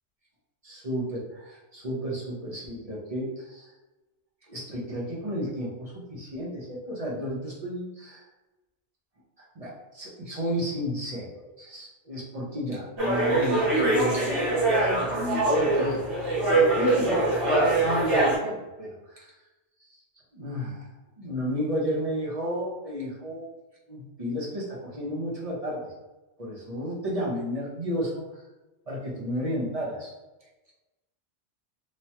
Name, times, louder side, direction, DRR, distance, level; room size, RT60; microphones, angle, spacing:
voice 1, 0.6-3.7 4.5-8.3 9.4-16.0 16.5-19.3 19.8-19.9 20.3-20.9 21.2-23.5 23.9-25.9 26.4-28.4 28.9-30.1, equal, 35° right, -5 dB, 0.7 m, -32 dB
sound 1, 13.0-18.4, right 2 dB, 55° right, 1.3 m, -23 dB
3.0 x 2.2 x 2.8 m, 1.1 s
omnidirectional pair, 1.2 m